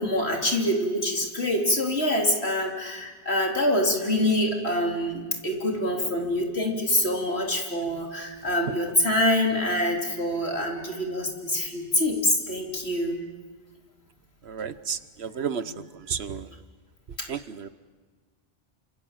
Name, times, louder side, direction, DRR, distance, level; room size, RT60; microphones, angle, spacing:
voice 1, 0.0-13.2 15.6-15.8, left 1 dB, 85° left, 0 dB, 3.9 m, -25 dB
voice 2, 14.5-15.6 16.1-16.4 17.3-17.7, right 7 dB, 85° right, 13 dB, 1.3 m, -31 dB
28.5 x 26.5 x 7.5 m, 1.4 s
omnidirectional pair, 1.1 m